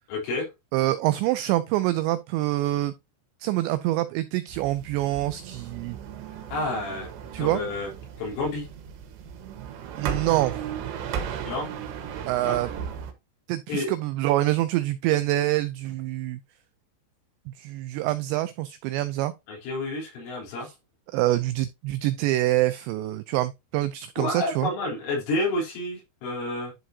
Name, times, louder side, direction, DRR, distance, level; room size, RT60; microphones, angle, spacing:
voice 1, 0.1-0.5 6.5-7.1 7.4-7.9 8.2-8.7 11.4-11.7 12.4-12.6 13.7-13.9 19.5-20.7 24.2-26.7, left 2 dB, 85° left, 6.3 m, -29 dB
voice 2, 0.7-2.9 3.4-6.0 7.3-7.6 10.0-10.6 12.3-12.7 13.5-16.4 17.5-19.3 20.6-20.7 21.1-24.7, right 16 dB, 90° right, 2.5 m, -26 dB
sound 1, 4.5-13.1, right 8 dB, 70° right, 3.2 m, -36 dB
11.0 x 4.7 x 2.7 m
omnidirectional pair, 5.6 m